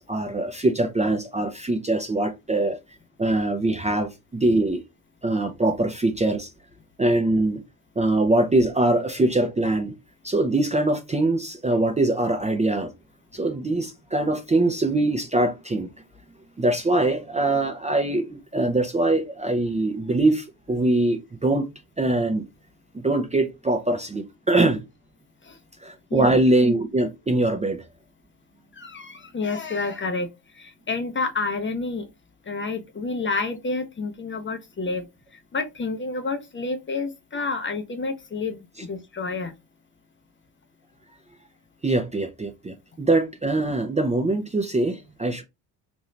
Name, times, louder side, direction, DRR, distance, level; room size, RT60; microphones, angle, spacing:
voice 1, 0.0-2.8 3.2-4.8 5.2-6.5 7.0-7.6 8.0-10.0 10.2-12.9 13.3-15.9 16.6-21.7 22.0-22.4 22.9-24.8 25.8-27.8 38.8-38.9 41.8-45.4, right 2 dB, 15° right, 0.5 m, -23 dB
voice 2, 28.7-32.1 32.4-39.6, left 3 dB, 25° left, 0.7 m, -29 dB
2.7 x 2.6 x 3.2 m
supercardioid pair, 65°, 45 cm